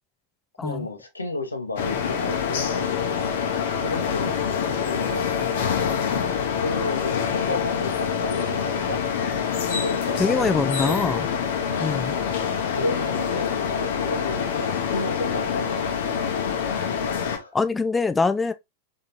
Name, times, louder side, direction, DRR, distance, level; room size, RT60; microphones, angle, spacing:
voice 1, 0.6-3.4 3.8-6.1 6.5-9.0 9.7-11.0 11.7-11.9 12.7-16.2 17.3-17.5, left 2 dB, 80° left, 0.9 m, -33 dB
sound 1, 1.8-17.4, left 7 dB, 60° left, 0.9 m, -26 dB
voice 2, 10.2-11.3 11.8-12.1 17.5-18.5, left 4 dB, 15° left, 0.4 m, -23 dB
3.7 x 3.7 x 2.8 m
figure-of-eight pair, 90°, 0 cm